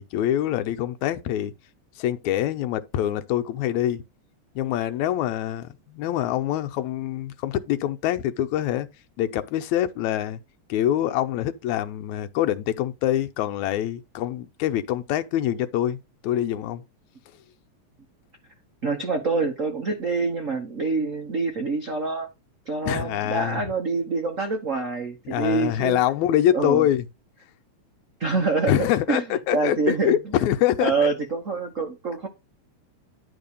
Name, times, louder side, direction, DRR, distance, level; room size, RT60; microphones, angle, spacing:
voice 1, 0.0-1.5 2.0-4.0 4.6-8.9 9.2-10.4 10.7-16.8 22.9-23.6 25.3-27.1 28.7-31.1, left 12 dB, 85° left, 2.1 m, -25 dB
voice 2, 18.8-22.3 22.7-26.0 26.5-26.8 28.2-29.2 29.5-30.4 30.8-32.3, right 4 dB, 85° right, 0.7 m, -26 dB
10.5 x 3.7 x 5.4 m
omnidirectional pair, 3.3 m